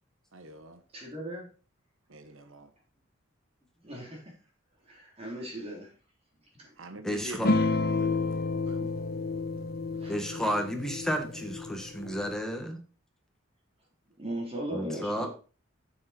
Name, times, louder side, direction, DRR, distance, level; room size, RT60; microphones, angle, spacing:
voice 1, 0.3-0.8 2.1-2.7 6.8-8.3 8.7-8.8, right 2 dB, 80° right, 1.3 m, -44 dB
voice 2, 0.9-1.5 3.8-4.3 4.9-5.9 6.6-6.7 9.5-9.7 10.0-10.1 12.0-12.1 14.2-15.3, right 1 dB, 30° right, 3.6 m, -38 dB
voice 3, 7.0-7.5 10.1-12.8 14.7-15.3, equal, 5° left, 1.7 m, -32 dB
sound 1, 7.4-12.3, left 3 dB, 50° left, 0.9 m, -30 dB
9.0 x 7.9 x 4.4 m
head